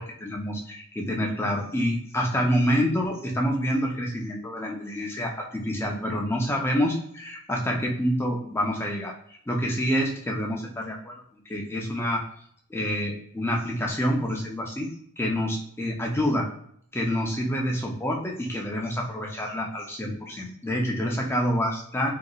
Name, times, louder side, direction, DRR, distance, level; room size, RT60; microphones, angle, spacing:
voice 1, 0.0-9.1 9.5-11.1 11.5-12.2 12.7-14.9 15.2-16.5 16.9-22.1, equal, 10° left, -1 dB, 0.5 m, -27 dB
3.9 x 2.6 x 2.3 m, 0.66 s
head